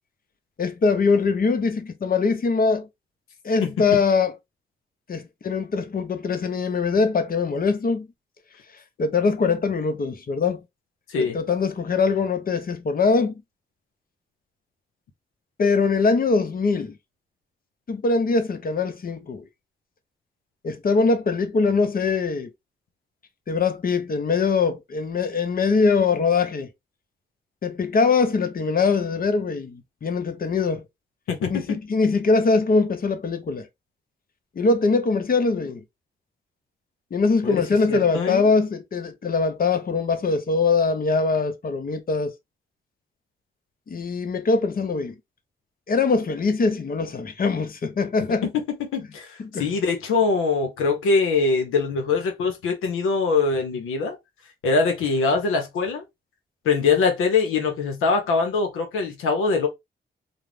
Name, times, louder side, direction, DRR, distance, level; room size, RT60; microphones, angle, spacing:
voice 1, 0.6-2.9 3.4-4.3 5.1-8.1 9.0-10.6 11.2-13.3 15.6-16.9 17.9-19.4 20.6-22.5 23.5-26.7 27.6-30.8 31.5-33.7 34.6-35.8 37.1-42.3 43.9-45.1 45.9-48.4 49.4-49.7, left 4 dB, 45° left, 0.7 m, -22 dB
voice 2, 3.6-4.0 11.1-11.4 31.3-31.8 37.4-37.6 37.9-38.5 48.4-54.2 54.6-56.0 56.6-59.7, left 4 dB, 85° left, 0.6 m, -23 dB
2.4 x 2.0 x 3.1 m
supercardioid pair, 45°, 21 cm